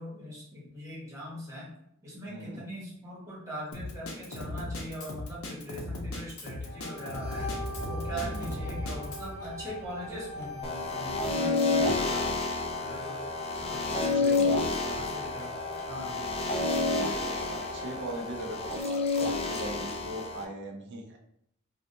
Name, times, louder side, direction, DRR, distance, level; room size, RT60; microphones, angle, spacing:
voice 1, 0.0-1.7 2.0-7.5 7.8-12.3 12.8-13.3 13.6-15.5 15.9-16.2, equal, 15° right, -7 dB, 1.2 m, -41 dB
voice 2, 2.3-2.6 8.1-8.5 14.2-14.6 16.6-21.2, right 1 dB, 55° right, 2 dB, 0.5 m, -40 dB
Drum kit, 3.7-9.3, left 2 dB, 85° left, 0.6 m, -38 dB
sound 1, 6.6-18.8, left 1 dB, 50° left, 0.7 m, -40 dB
sound 2, 10.6-20.4, left 3 dB, 30° left, 0.4 m, -30 dB
3.4 x 2.4 x 2.6 m, 0.74 s
head